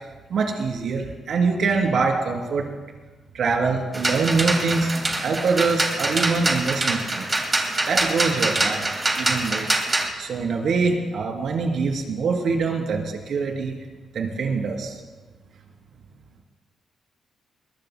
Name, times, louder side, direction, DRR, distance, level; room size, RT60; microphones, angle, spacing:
voice 1, 0.3-1.0 1.3-2.7 3.3-4.9 5.2-7.4 7.9-8.8 9.2-9.7 10.2-13.0 13.3-13.7 14.1-14.9, right 4 dB, 65° right, 1 dB, 3.0 m, -24 dB
sound 1, 3.9-10.1, right 2 dB, 20° right, 2.0 m, -24 dB
21.5 x 21.0 x 2.2 m, 1.3 s
cardioid pair, 135°, 0 cm